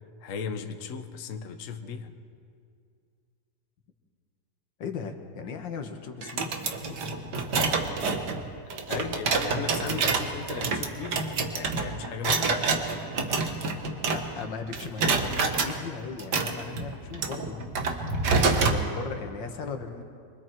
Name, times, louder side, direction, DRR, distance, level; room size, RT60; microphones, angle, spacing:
voice 1, 0.2-2.1 8.9-12.7, left 6 dB, 50° left, 6 dB, 1.3 m, -36 dB
voice 2, 4.8-7.0 14.1-18.0 18.6-20.0, left 5 dB, 75° left, 5 dB, 2.1 m, -38 dB
sound 1, 6.2-14.5 14.7-15.7 16.2-18.8, right 4 dB, 65° right, 1.9 m, -27 dB
25.0 x 23.5 x 4.6 m, 2.3 s
omnidirectional pair, 2.0 m